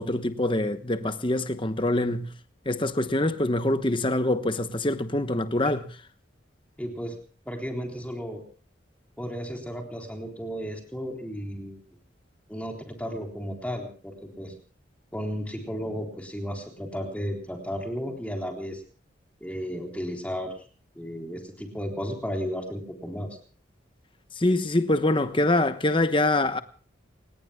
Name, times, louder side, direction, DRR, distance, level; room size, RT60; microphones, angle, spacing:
voice 1, 0.0-2.3 2.7-5.9 24.4-26.6, left 1 dB, 25° left, 1.1 m, -24 dB
voice 2, 6.8-7.2 7.5-8.4 9.2-11.8 12.5-14.5 15.1-18.8 19.4-20.5 21.0-23.4, equal, 5° left, 3.6 m, -34 dB
29.5 x 19.0 x 2.3 m
head